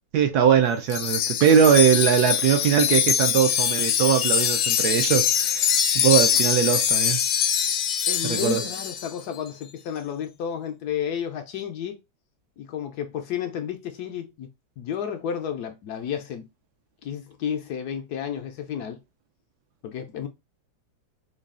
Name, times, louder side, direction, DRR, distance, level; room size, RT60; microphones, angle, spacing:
voice 1, 0.1-7.2 8.3-8.6, right 8 dB, 70° right, 1.0 m, -21 dB
Wind chime, 0.9-9.1, left 9 dB, 85° left, 1.3 m, -23 dB
voice 2, 8.1-12.0 12.6-14.5 14.8-16.5 17.0-19.0 19.8-20.3, left 8 dB, 70° left, 1.0 m, -32 dB
3.9 x 2.3 x 3.6 m
omnidirectional pair, 1.9 m